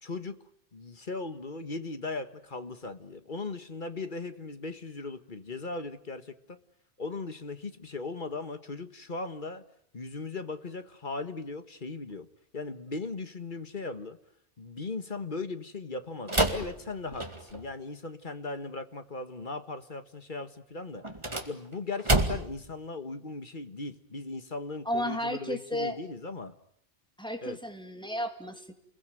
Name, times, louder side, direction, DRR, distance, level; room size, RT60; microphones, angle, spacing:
voice 1, 0.0-0.4 0.7-6.6 7.0-9.6 9.9-12.3 12.5-14.2 14.6-21.0 21.5-26.5 27.4-27.6, left 3 dB, 45° left, 10 dB, 1.7 m, -38 dB
sound 1, 16.3-17.7 21.0-22.7, right 2 dB, 25° right, 2.3 m, -29 dB
voice 2, 24.8-26.0 27.2-28.7, equal, 5° left, 6 dB, 2.6 m, -33 dB
29.0 x 22.0 x 9.2 m, 0.69 s
omnidirectional pair, 1.2 m